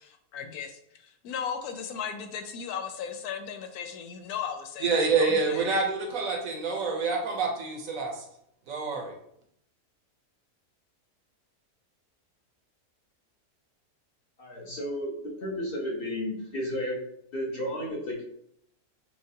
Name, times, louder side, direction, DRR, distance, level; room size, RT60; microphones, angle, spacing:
voice 1, 0.0-5.7, left 7 dB, 80° left, 7 dB, 1.1 m, -36 dB
voice 2, 4.8-8.2 8.7-9.1, right 4 dB, 70° right, 2 dB, 1.1 m, -27 dB
voice 3, 14.4-17.0 17.3-18.2, equal, 45° left, -2 dB, 0.9 m, -33 dB
6.2 x 2.3 x 2.7 m, 0.71 s
omnidirectional pair, 1.6 m